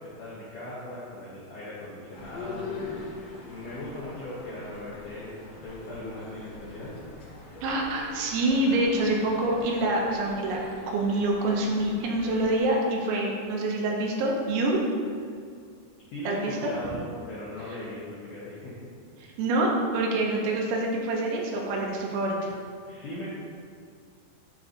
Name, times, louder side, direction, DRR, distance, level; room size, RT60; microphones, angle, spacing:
voice 1, 0.0-2.7 3.4-6.9 16.1-18.9 22.9-23.3, left 1 dB, 80° left, -9 dB, 1.8 m, -39 dB
sound 1, 2.1-12.6, left 3 dB, 55° left, 1.9 m, -43 dB
voice 2, 7.6-14.8 16.3-16.7 19.4-22.5, right 2 dB, 85° right, -1 dB, 3.0 m, -26 dB
10.5 x 3.7 x 2.6 m, 2.2 s
omnidirectional pair, 5.0 m